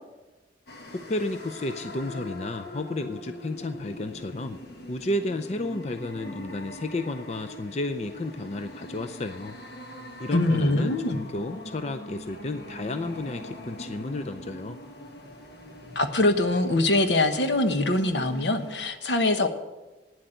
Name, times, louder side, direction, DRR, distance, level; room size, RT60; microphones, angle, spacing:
sound 1, 0.7-18.8, left 1 dB, 60° left, 1.4 m, -42 dB
voice 1, 0.9-4.6 4.9-9.5 10.2-14.8, left 2 dB, 35° left, 8 dB, 0.5 m, -32 dB
voice 2, 10.3-11.2 15.9-19.5, left 2 dB, 80° left, 7 dB, 1.1 m, -23 dB
9.4 x 8.1 x 9.0 m, 1.1 s
head